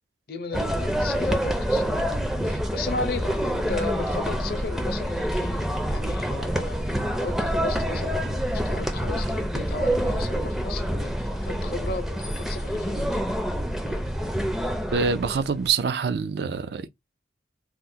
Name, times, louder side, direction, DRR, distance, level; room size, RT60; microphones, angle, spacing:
voice 1, 0.3-2.0 2.4-5.6 5.9-13.2, left 4 dB, 55° left, 0.6 m, -35 dB
sound 1, 0.5-15.7, equal, ahead, 0.4 m, -27 dB
voice 2, 14.9-16.9, right 5 dB, 65° right, 0.4 m, -25 dB
3.0 x 2.1 x 3.6 m
head